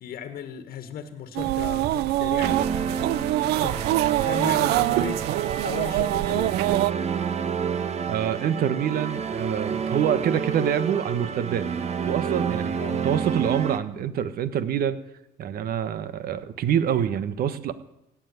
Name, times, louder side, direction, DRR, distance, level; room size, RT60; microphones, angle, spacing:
voice 1, 0.0-2.7 3.4-5.3 5.6-6.6 12.8-13.1, left 6 dB, 60° left, 9 dB, 1.5 m, -36 dB
sound 1, 1.4-6.9, right 17 dB, 80° right, 0.5 m, -24 dB
sound 2, 2.4-13.8, right 6 dB, 40° right, 1.2 m, -29 dB
voice 2, 8.1-11.7 12.0-15.0 15.4-17.7, right 9 dB, 60° right, 13 dB, 1.3 m, -26 dB
17.0 x 7.5 x 9.7 m, 0.91 s
cardioid pair, 110°, 17 cm